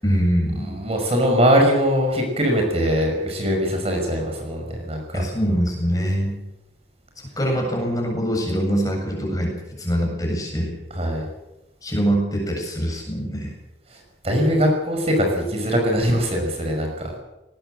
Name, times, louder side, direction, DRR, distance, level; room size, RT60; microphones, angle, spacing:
voice 1, 0.0-0.7 5.1-6.3 7.4-10.8 11.8-13.5, equal, 20° left, 1 dB, 7.8 m, -23 dB
voice 2, 0.6-5.2 10.9-11.3 13.9-14.0 14.2-17.1, equal, 35° right, 2 dB, 5.6 m, -21 dB
19.5 x 19.5 x 7.9 m, 0.96 s
head